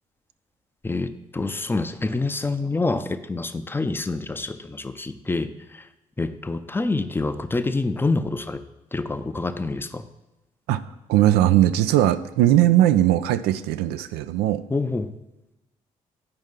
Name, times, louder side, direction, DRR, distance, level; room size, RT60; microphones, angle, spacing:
voice 1, 0.8-5.9 6.2-8.6 8.9-10.0 14.7-15.1, left 3 dB, 10° left, 9 dB, 0.6 m, -27 dB
voice 2, 11.1-14.6, right 13 dB, 70° right, 13 dB, 0.4 m, -19 dB
8.8 x 5.3 x 3.7 m, 1.0 s
hypercardioid pair, 40°, 17 cm